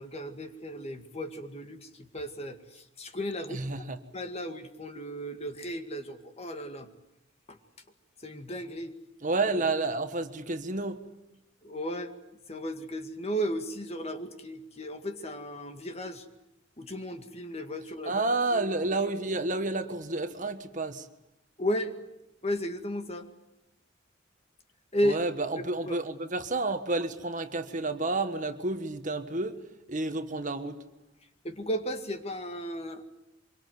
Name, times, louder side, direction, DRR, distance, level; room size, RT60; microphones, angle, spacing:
voice 1, 0.0-3.8 4.1-6.9 7.5-7.6 8.2-8.9 11.6-12.1 12.5-16.3 16.8-18.2 21.6-22.0 22.4-23.3 24.9-25.2 25.6-26.0 31.4-33.0, equal, 30° left, 7 dB, 2.1 m, -34 dB
voice 2, 3.5-4.0 9.2-11.0 18.0-21.1 25.0-29.6 29.9-30.8, right 2 dB, 40° right, 9 dB, 1.5 m, -30 dB
25.5 x 23.5 x 9.5 m, 0.86 s
head